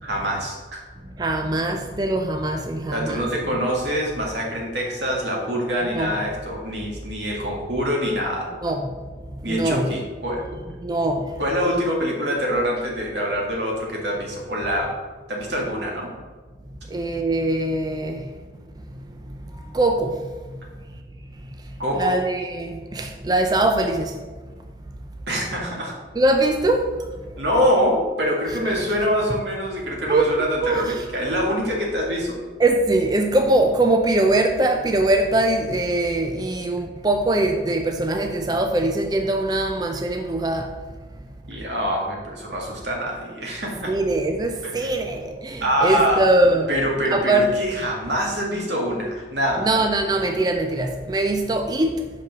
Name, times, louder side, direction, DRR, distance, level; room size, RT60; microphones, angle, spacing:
voice 1, 0.0-0.8 2.9-8.5 9.4-10.4 11.4-14.9 15.3-16.1 21.8-22.2 25.3-26.0 27.4-32.4 41.5-44.0 44.8-44.9 45.6-46.3 46.7-49.7, equal, 85° right, -1 dB, 1.9 m, -25 dB
voice 2, 1.2-3.3 5.9-6.1 8.6-8.8 9.4-9.9 10.8-11.4 16.9-18.3 18.9-19.0 19.2-20.2 22.0-24.2 26.2-26.9 30.1-30.3 30.6-31.0 32.6-40.8 43.9-46.7 47.1-47.5 49.6-52.1, right 2 dB, 20° right, 4 dB, 0.4 m, -22 dB
5.4 x 5.3 x 6.0 m, 1.4 s
head